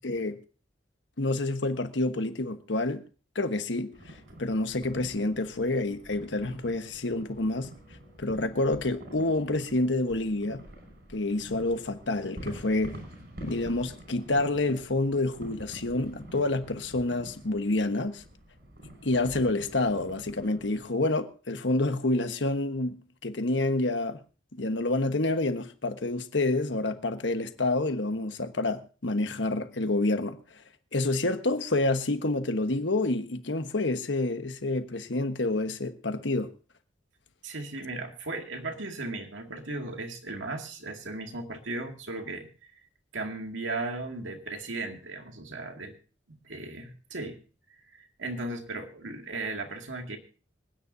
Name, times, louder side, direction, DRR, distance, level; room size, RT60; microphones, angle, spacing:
voice 1, 0.0-0.4 1.2-3.0 3.3-7.7 8.2-10.6 11.1-13.0 13.4-18.2 19.0-22.9 23.2-24.2 24.6-30.4 30.9-36.5, left 2 dB, 75° left, 1.2 m, -28 dB
sound 1, 3.9-20.9, equal, 60° right, 5.6 m, -47 dB
voice 2, 37.4-42.7 43.1-45.9 46.3-47.4 47.9-50.2, right 2 dB, 90° right, 2.2 m, -36 dB
26.0 x 9.7 x 2.7 m
head